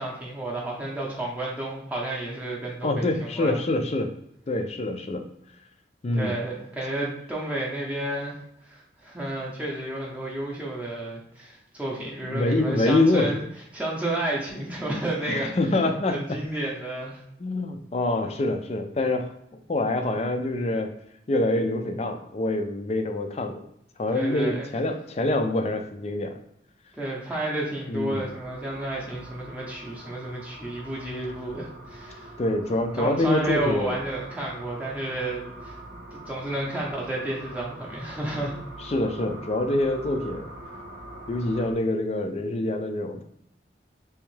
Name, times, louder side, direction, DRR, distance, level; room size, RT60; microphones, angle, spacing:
voice 1, 0.0-3.6 6.1-8.4 8.6-13.4 13.7-15.5 16.1-17.2 24.1-24.7 27.0-32.3 33.0-35.8 36.1-38.5, right 1 dB, 10° right, -4 dB, 0.7 m, -31 dB
voice 2, 2.8-4.1 4.5-5.2 6.0-6.4 12.3-13.3 15.2-16.4 17.4-19.3 19.7-20.9 21.3-23.6 24.0-26.4 27.9-28.3 32.4-34.0 38.8-40.5 41.3-43.2, left 2 dB, 35° left, 6 dB, 0.4 m, -25 dB
sound 1, 28.3-41.7, right 1 dB, 85° right, 0.9 m, -43 dB
3.4 x 3.0 x 3.2 m, 0.76 s
head